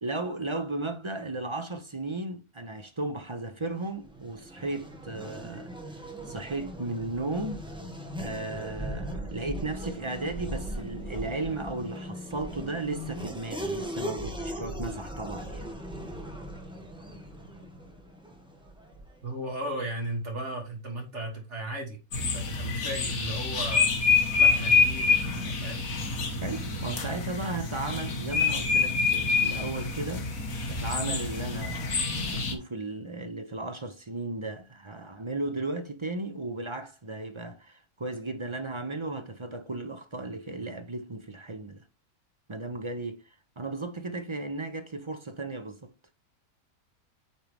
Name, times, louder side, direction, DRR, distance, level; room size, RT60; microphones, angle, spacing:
voice 1, 0.0-5.7 6.0-7.6 8.2-15.7 26.4-30.3 30.7-41.8 42.5-43.2 43.6-45.9, right 2 dB, 25° right, 0.7 m, -35 dB
Race car auto racing / Accelerating revving vroom, 3.7-19.3, equal, 5° right, 1.4 m, -39 dB
voice 2, 19.2-23.9 24.4-25.9, right 1 dB, 50° right, 2.8 m, -36 dB
sound 1, 22.1-32.5, left 5 dB, 65° left, 1.9 m, -27 dB
8.7 x 4.6 x 3.5 m
omnidirectional pair, 1.6 m